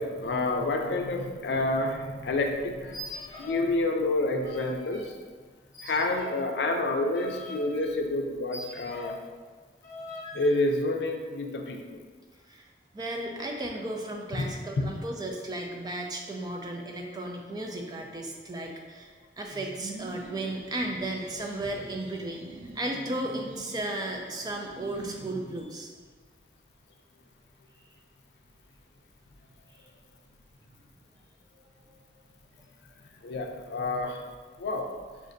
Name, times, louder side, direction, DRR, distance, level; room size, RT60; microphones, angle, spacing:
voice 1, 0.0-3.0 3.4-5.1 5.8-9.2 10.3-12.0 14.4-14.5 14.8-14.9 33.2-34.2 34.6-34.9, left 2 dB, 75° left, 3 dB, 0.4 m, -28 dB
sound 1, 2.8-3.7 4.0-5.1 5.7-9.3 9.8-10.6, left 1 dB, 20° left, 0.8 m, -42 dB
voice 2, 12.9-25.9 31.9-32.0, right 1 dB, 25° right, 2 dB, 0.3 m, -35 dB
sound 2, 19.5-25.6, right 2 dB, 85° right, 0.5 m, -45 dB
6.2 x 2.5 x 2.5 m, 1.5 s
head